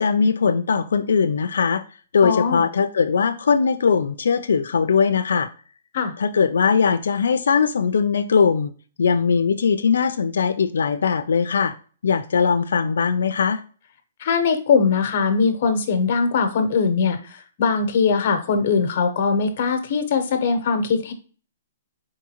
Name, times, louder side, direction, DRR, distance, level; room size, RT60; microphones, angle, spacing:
voice 1, 0.0-1.8 2.1-5.5 6.2-8.7 9.0-11.7 12.0-13.6, left 6 dB, 90° left, 8 dB, 0.4 m, -20 dB
voice 2, 2.2-2.6 5.9-6.1 14.2-21.1, left 5 dB, 40° left, 6 dB, 0.9 m, -21 dB
4.6 x 3.6 x 2.9 m, 0.39 s
hypercardioid pair, 170°, 0 cm